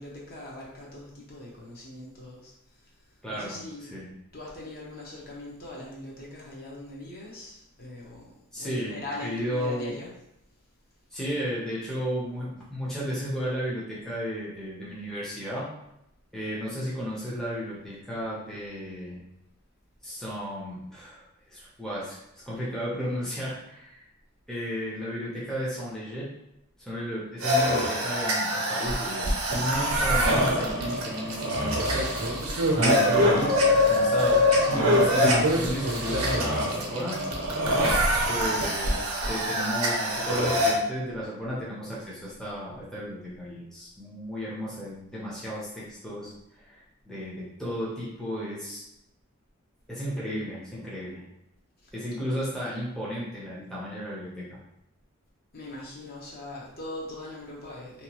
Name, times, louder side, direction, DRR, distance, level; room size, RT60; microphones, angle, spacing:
voice 1, 0.0-2.9 3.3-3.9 4.3-10.2 38.4-38.6 51.8-52.2 55.5-58.0, left 2 dB, 45° left, -4 dB, 0.7 m, -41 dB
voice 2, 3.2-4.1 8.5-9.9 11.1-15.7 16.3-19.2 20.0-21.2 21.5-24.0 24.5-26.3 26.8-31.9 32.7-34.4 34.7-37.2 38.3-48.8 49.9-51.2 51.9-54.6, equal, 5° left, -8 dB, 0.5 m, -34 dB
sound 1, 27.4-40.7, equal, 80° right, 0.6 m, -24 dB
2.8 x 2.2 x 2.8 m, 0.84 s
head